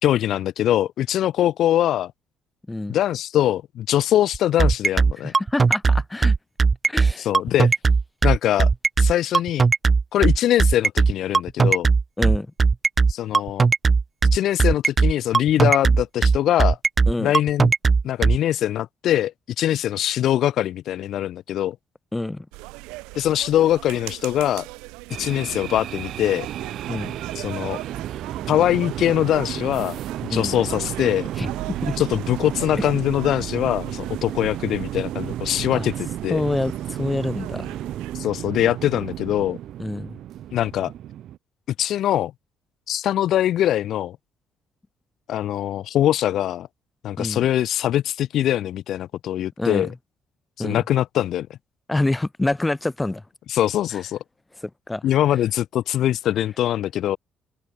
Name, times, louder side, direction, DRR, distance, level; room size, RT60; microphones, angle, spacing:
voice 1, 0.0-2.1 2.9-5.3 7.2-7.7 8.2-8.7 9.0-9.6 10.1-11.9 13.1-13.7 14.3-16.8 17.2-17.7 18.0-21.8 23.1-24.7 25.2-26.5 27.3-27.8 28.5-30.0 30.3-31.3 32.0-36.4 38.1-39.6 40.5-40.9 41.8-42.3 42.9-44.2 45.3-46.7 47.0-49.9 50.6-51.5 53.5-54.2 55.0-57.2, left 12 dB, 70° left, 1.1 m, -22 dB
sound 1, 4.3-18.4, right 4 dB, 35° right, 0.9 m, -17 dB
voice 2, 5.2-6.3 6.9-7.3 12.2-12.5 17.1-17.3 22.1-22.5 26.9-27.2 30.3-30.6 31.4-31.5 31.8-32.0 35.7-35.9 36.3-37.8 39.8-40.2 47.2-47.5 49.6-49.9 50.6-50.8 51.9-53.2 54.6-55.0, left 2 dB, 15° left, 1.4 m, -26 dB
sound 2, 22.5-38.2, right 25 dB, 85° right, 4.4 m, -40 dB
sound 3, 25.1-41.4, right 12 dB, 70° right, 1.6 m, -32 dB
supercardioid pair, 60°, 0 cm